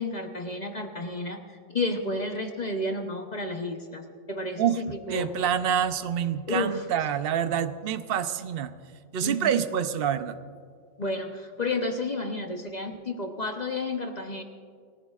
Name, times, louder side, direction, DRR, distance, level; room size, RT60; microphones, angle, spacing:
voice 1, 0.0-5.3 6.5-6.8 9.2-9.5 11.0-14.4, left 2 dB, 40° left, 4 dB, 0.9 m, -31 dB
voice 2, 5.1-8.7 9.1-10.4, right 9 dB, 55° right, 11 dB, 0.8 m, -27 dB
29.5 x 15.0 x 2.4 m, 2.1 s
omnidirectional pair, 1.3 m